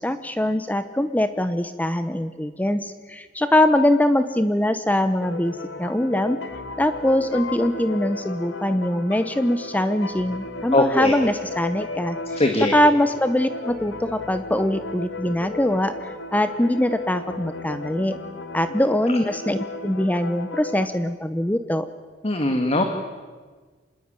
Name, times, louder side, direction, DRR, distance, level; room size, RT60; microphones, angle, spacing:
voice 1, 0.0-6.4 6.8-12.2 12.7-15.9 16.3-18.2 18.5-21.9, left 1 dB, 10° left, 11 dB, 0.8 m, -22 dB
sound 1, 5.2-20.9, left 3 dB, 90° left, 2.4 m, -34 dB
voice 2, 10.7-11.1 12.4-12.8 19.1-19.2 22.2-22.8, left 1 dB, 35° left, 5 dB, 2.0 m, -21 dB
26.5 x 20.5 x 9.0 m, 1.4 s
head